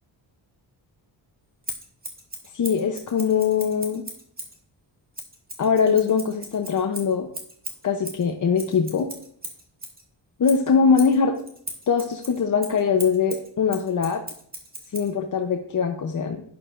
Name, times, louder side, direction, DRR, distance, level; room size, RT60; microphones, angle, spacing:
Scissors, 1.6-4.6 5.1-10.0 10.4-15.1, right 1 dB, 20° right, 1.9 m, -38 dB
voice 1, 2.5-4.1 5.6-7.3 7.8-9.1 10.4-11.3 11.9-14.2 14.9-16.4, left 6 dB, 45° left, 3 dB, 0.7 m, -22 dB
11.5 x 9.9 x 2.5 m, 0.63 s
wide cardioid pair, 160°, 44 cm